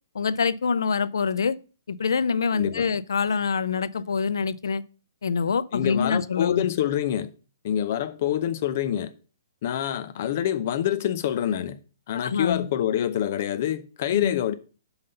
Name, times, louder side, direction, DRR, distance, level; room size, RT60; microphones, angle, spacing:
voice 1, 0.1-1.6 1.9-4.8 5.2-6.7 12.2-12.7 14.1-14.4, left 5 dB, 90° left, 0.5 m, -25 dB
voice 2, 2.5-2.9 5.7-7.3 7.6-9.1 9.6-11.8 12.1-14.5, left 10 dB, 30° left, 0.6 m, -26 dB
5.6 x 5.6 x 6.5 m
hypercardioid pair, 180°, 2 cm